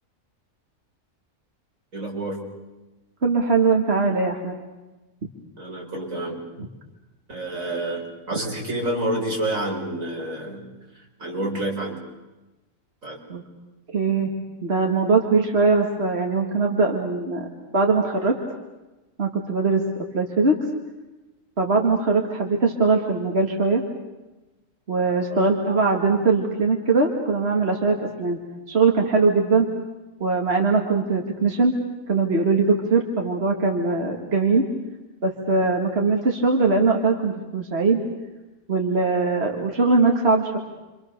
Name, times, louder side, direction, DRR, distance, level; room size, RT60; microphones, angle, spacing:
voice 1, 1.9-2.4 5.6-6.4 7.3-10.7 10.9-12.0 13.0-13.2 25.3-25.4, right 1 dB, 80° right, -1 dB, 5.5 m, -29 dB
voice 2, 3.2-4.6 13.3-13.4 13.9-14.3 14.6-17.5 17.7-18.3 19.2-19.9 20.1-20.6 21.6-23.8 24.9-28.4 28.7-29.7 30.2-31.8 32.1-34.6 35.2-38.0 38.7-40.6, right 4 dB, 50° right, 1 dB, 2.4 m, -21 dB
29.0 x 25.5 x 6.7 m, 1.1 s
omnidirectional pair, 1.4 m